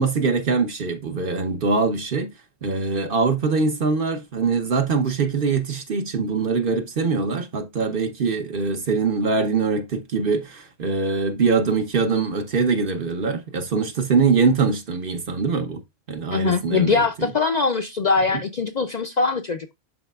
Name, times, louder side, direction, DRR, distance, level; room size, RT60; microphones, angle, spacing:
voice 1, 0.0-2.3 2.6-15.8 16.1-17.3, right 4 dB, 55° right, 1.1 m, -23 dB
voice 2, 16.3-19.7, left 4 dB, 50° left, 0.6 m, -22 dB
11.0 x 4.1 x 2.4 m
omnidirectional pair, 1.1 m